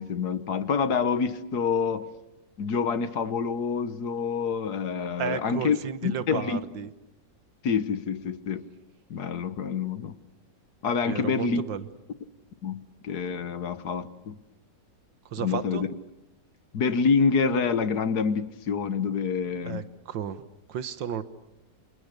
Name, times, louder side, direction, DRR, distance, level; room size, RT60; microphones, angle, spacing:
voice 1, 0.0-2.1 2.6-5.8 6.0-6.6 7.6-8.6 9.1-10.2 10.8-11.6 12.6-14.4 15.4-15.9 16.7-19.8, left 5 dB, 60° left, 1.7 m, -27 dB
voice 2, 5.2-6.9 11.1-11.9 15.3-15.9 19.7-21.2, right 8 dB, 90° right, 1.9 m, -33 dB
29.0 x 27.0 x 6.7 m
omnidirectional pair, 1.9 m